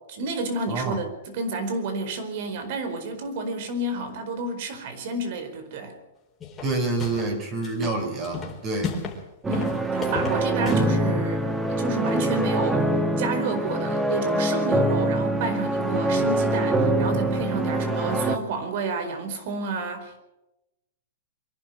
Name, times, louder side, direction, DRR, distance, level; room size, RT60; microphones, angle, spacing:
voice 1, 0.1-5.9 9.5-20.2, right 2 dB, 55° right, 8 dB, 4.6 m, -30 dB
voice 2, 0.7-1.0 6.6-8.9 10.6-10.7, right 3 dB, 30° right, 4 dB, 5.0 m, -27 dB
sound 1, 6.4-7.4 7.6-9.2 9.5-10.9, left 5 dB, 15° left, 4.3 m, -34 dB
sound 2, 9.4-18.4, right 1 dB, 10° right, 1.8 m, -24 dB
24.0 x 11.5 x 9.2 m, 0.95 s
hypercardioid pair, 150°, 0 cm